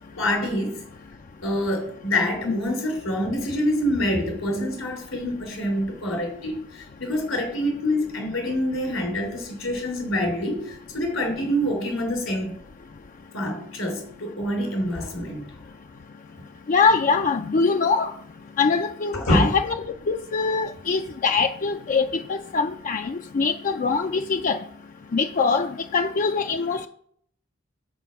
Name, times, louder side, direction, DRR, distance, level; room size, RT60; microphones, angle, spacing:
voice 1, 0.2-0.8 1.4-12.6 13.3-15.4 19.1-19.5, left 1 dB, 85° left, 3.5 m, -26 dB
voice 2, 16.7-18.1 18.6-19.8 20.1-24.6 25.1-26.9, left 4 dB, 40° left, 0.4 m, -23 dB
7.1 x 4.9 x 7.0 m
head